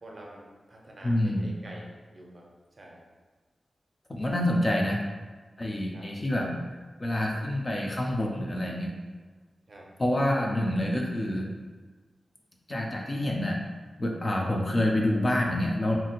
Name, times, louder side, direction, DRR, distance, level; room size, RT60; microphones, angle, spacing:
voice 1, 0.0-3.1 5.9-6.1 9.7-9.9 14.3-14.4, right 1 dB, 40° right, -2 dB, 0.5 m, -48 dB
voice 2, 1.0-1.5 4.1-5.0 5.6-6.5 7.0-8.9 10.0-11.5 12.7-13.6 14.0-15.9, left 1 dB, 30° left, -1 dB, 0.4 m, -27 dB
2.7 x 2.5 x 2.8 m, 1.4 s
wide cardioid pair, 130°, 0 cm